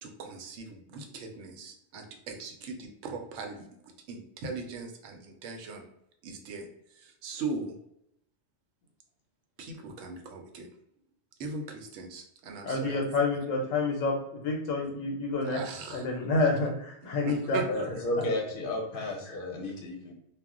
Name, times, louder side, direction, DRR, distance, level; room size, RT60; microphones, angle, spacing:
voice 1, 0.0-3.7 4.1-5.8 6.2-6.7 6.9-7.7 9.6-10.7 11.4-13.0 14.8-14.9 15.4-16.0 16.4-16.5 17.0-17.9, right 3 dB, 75° right, 3 dB, 0.9 m, -39 dB
voice 2, 12.6-15.6 15.9-17.6 18.9-19.0, left 3 dB, 90° left, 0 dB, 1.0 m, -29 dB
voice 3, 17.7-20.1, left 1 dB, 55° left, 0 dB, 0.7 m, -32 dB
2.3 x 2.0 x 3.5 m, 0.78 s
omnidirectional pair, 1.3 m